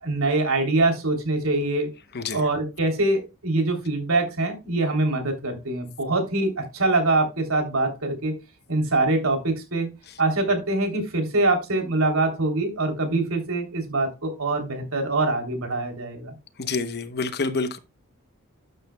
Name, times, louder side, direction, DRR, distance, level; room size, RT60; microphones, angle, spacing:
voice 1, 0.0-1.9 2.3-8.3 8.7-9.9 10.2-16.3, right 2 dB, 70° right, 3.3 m, -24 dB
voice 2, 16.6-17.8, left 4 dB, 50° left, 0.9 m, -27 dB
12.0 x 8.0 x 2.3 m
head